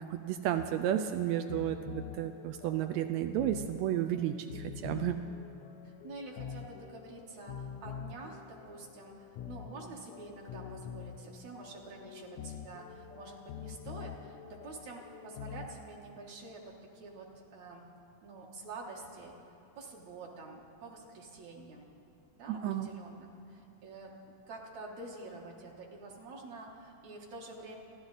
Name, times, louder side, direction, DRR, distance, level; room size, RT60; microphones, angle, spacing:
voice 1, 0.0-5.2 22.5-22.9, right 11 dB, 85° right, 7 dB, 1.5 m, -32 dB
sound 1, 0.6-15.8, left 7 dB, 80° left, 1.7 m, -46 dB
voice 2, 5.8-9.1 9.5-17.8 18.2-19.3 19.8-21.9 22.4-24.1 24.5-27.8, right 3 dB, 65° right, -1 dB, 2.5 m, -47 dB
28.0 x 11.0 x 4.0 m, 2.8 s
omnidirectional pair, 3.7 m